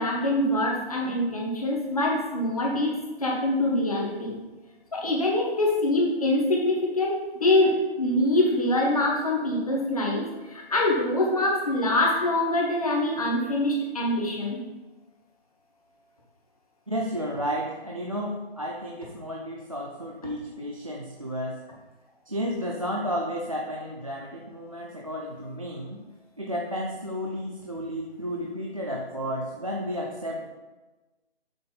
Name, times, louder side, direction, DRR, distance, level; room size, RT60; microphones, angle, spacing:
voice 1, 0.0-4.4 4.9-14.6, left 1 dB, 35° left, -2 dB, 1.2 m, -24 dB
voice 2, 16.9-21.6 22.3-26.0 26.4-30.5, equal, 35° right, -3 dB, 0.5 m, -32 dB
6.7 x 3.5 x 3.9 m, 1.2 s
hypercardioid pair, 175°, 31 cm